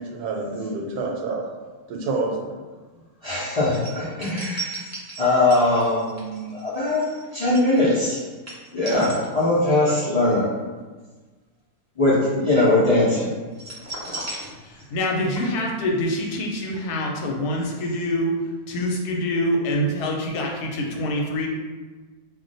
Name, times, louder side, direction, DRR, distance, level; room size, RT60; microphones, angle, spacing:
voice 1, 0.0-1.5 1.9-2.6, right 3 dB, 85° right, 1 dB, 1.1 m, -28 dB
voice 2, 3.2-4.7 5.2-7.0 7.3-8.2 8.7-10.4 12.0-13.3, left 2 dB, 50° left, -10 dB, 0.4 m, -20 dB
sound 1, 3.7-9.8 10.1-10.4 13.5-15.1 15.3-15.4, right 3 dB, 25° right, 0.3 m, -36 dB
voice 3, 14.7-18.3 18.7-21.5, left 1 dB, 85° left, 0 dB, 1.1 m, -25 dB
2.4 x 2.2 x 3.8 m, 1.3 s
omnidirectional pair, 1.6 m